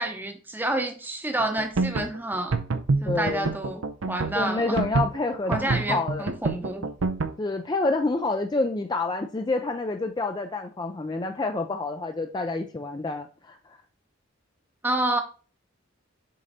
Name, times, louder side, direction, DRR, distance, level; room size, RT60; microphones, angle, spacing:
voice 1, 0.0-2.6 3.0-4.8 5.5-6.9 14.8-15.2, right 1 dB, 10° right, 0.8 m, -29 dB
sound 1, 1.4-7.3, right 3 dB, 85° right, 0.6 m, -27 dB
voice 2, 3.0-3.5 4.3-6.3 7.4-13.6, left 2 dB, 20° left, 0.4 m, -28 dB
6.5 x 3.9 x 4.1 m
head